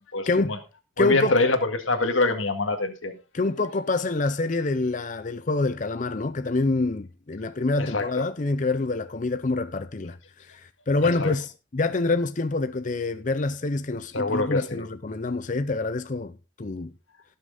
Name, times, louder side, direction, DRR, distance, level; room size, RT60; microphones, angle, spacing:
voice 1, 0.1-0.6 1.0-3.1 7.8-8.0 11.0-11.3 14.1-14.8, left 2 dB, 75° left, 1.9 m, -25 dB
voice 2, 1.0-1.4 3.3-16.9, left 3 dB, 40° left, 0.5 m, -26 dB
17.5 x 6.5 x 3.8 m
head